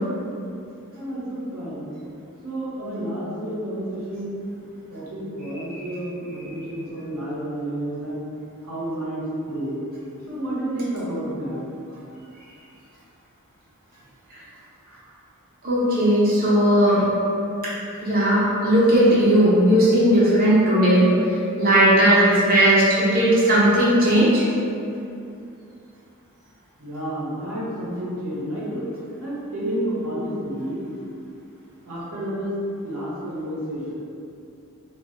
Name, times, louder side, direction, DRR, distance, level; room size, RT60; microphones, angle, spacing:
voice 1, 0.9-1.9 2.4-4.3 4.9-8.3 8.6-9.8 10.3-12.0 14.8-15.1 26.8-28.9 29.2-30.9 31.8-33.9, right 1 dB, 70° right, -9 dB, 0.9 m, -30 dB
voice 2, 15.6-17.0 18.0-21.1 21.6-24.4, right 1 dB, 40° right, -8 dB, 0.7 m, -17 dB
2.2 x 2.1 x 3.6 m, 2.6 s
head